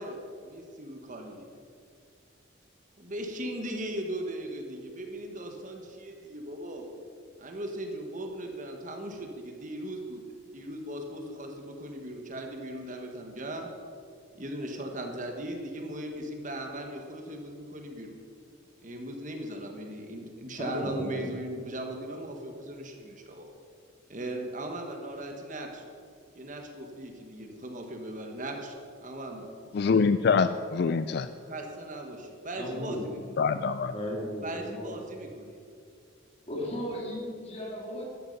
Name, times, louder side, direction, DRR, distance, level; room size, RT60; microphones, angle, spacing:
voice 1, 0.0-1.5 3.0-6.9 7.4-10.2 10.5-13.7 14.4-18.2 18.8-23.4 24.1-25.8 26.3-29.5 31.4-33.5 34.4-35.6, right 1 dB, 40° right, 3 dB, 1.4 m, -38 dB
voice 2, 20.6-21.4 32.6-33.1 33.9-35.0 36.5-38.1, equal, 30° left, -2 dB, 2.8 m, -35 dB
voice 3, 29.7-31.3 33.4-33.9, left 5 dB, 50° left, 12 dB, 0.3 m, -25 dB
13.0 x 11.0 x 5.5 m, 2.3 s
head